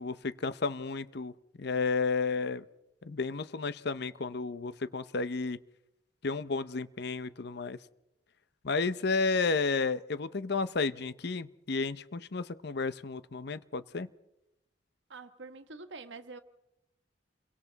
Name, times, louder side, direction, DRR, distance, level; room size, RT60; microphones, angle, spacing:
voice 1, 0.0-1.3 1.6-2.6 3.0-5.6 6.2-7.8 8.6-14.1, left 4 dB, 65° left, 0.7 m, -32 dB
voice 2, 15.1-16.4, right 3 dB, 80° right, 1.5 m, -46 dB
29.5 x 23.0 x 4.0 m
head